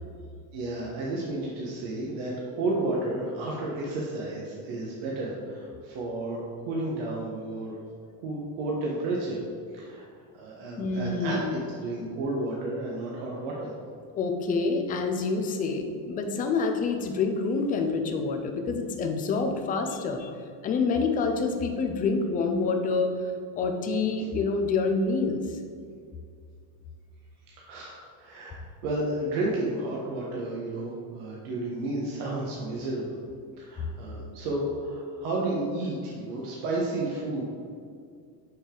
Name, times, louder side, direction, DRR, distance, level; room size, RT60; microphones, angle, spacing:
voice 1, 0.5-7.7 8.2-9.4 9.7-10.1 10.3-13.7 27.5-33.2 33.6-37.5, right 2 dB, 70° right, -4 dB, 1.3 m, -32 dB
voice 2, 10.8-11.6 14.2-20.3 20.6-23.1 23.6-25.6, left 4 dB, 20° left, 4 dB, 0.4 m, -27 dB
6.8 x 6.3 x 3.8 m, 2.2 s
cardioid pair, 175°, 42 cm